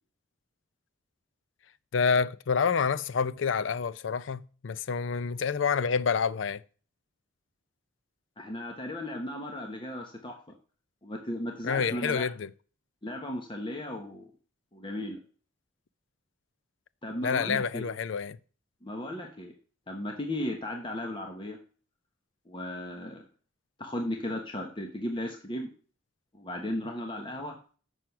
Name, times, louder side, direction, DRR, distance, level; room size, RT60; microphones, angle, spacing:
voice 1, 1.9-6.6 11.6-12.5 17.2-18.4, left 6 dB, 70° left, 0.5 m, -28 dB
voice 2, 8.4-10.4 11.0-12.3 13.0-14.3 14.7-15.2 17.0-17.8 18.8-19.5 19.9-21.6 22.5-23.2 23.8-25.7 26.3-27.6, left 1 dB, 25° left, 1.0 m, -35 dB
7.5 x 6.3 x 5.7 m
head